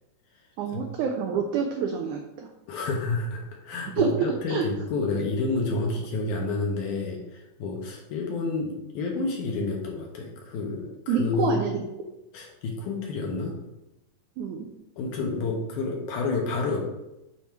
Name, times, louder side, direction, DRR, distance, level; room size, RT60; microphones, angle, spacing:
voice 1, 0.6-2.5 4.0-4.6 11.1-11.8 14.4-14.7, right 6 dB, 85° right, 3 dB, 1.7 m, -27 dB
voice 2, 2.7-11.7 12.3-13.6 15.0-16.8, left 3 dB, 75° left, 0 dB, 2.0 m, -29 dB
7.2 x 3.0 x 4.4 m, 0.94 s
omnidirectional pair, 4.1 m